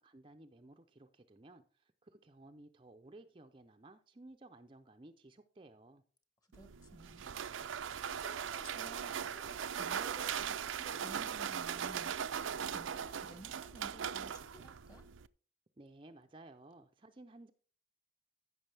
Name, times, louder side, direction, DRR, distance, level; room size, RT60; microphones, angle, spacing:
voice 1, 0.0-6.0 15.8-17.5, right 2 dB, 25° right, 0.5 m, -57 dB
voice 2, 6.5-7.6 8.0-15.0, right 1 dB, 20° left, 1.4 m, -55 dB
sound 1, 6.5-15.3, right 8 dB, 85° right, 0.5 m, -39 dB
14.5 x 6.2 x 3.4 m
head